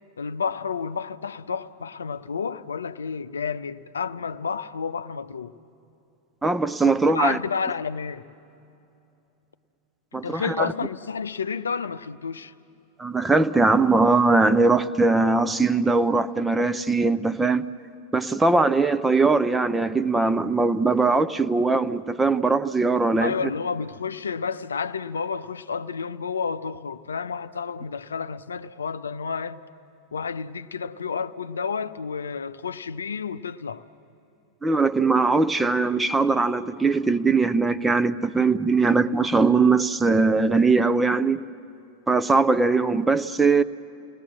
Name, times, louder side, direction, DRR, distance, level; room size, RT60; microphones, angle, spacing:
voice 1, 0.2-5.6 7.1-8.3 10.2-12.5 23.2-29.6 30.1-33.8, left 5 dB, 70° left, 0.5 m, -30 dB
voice 2, 6.4-7.4 10.1-10.7 13.0-17.7 18.1-23.3 34.6-41.4 42.1-43.6, right 3 dB, 10° right, 0.6 m, -21 dB
29.5 x 19.5 x 7.4 m
figure-of-eight pair, 90°, 0 cm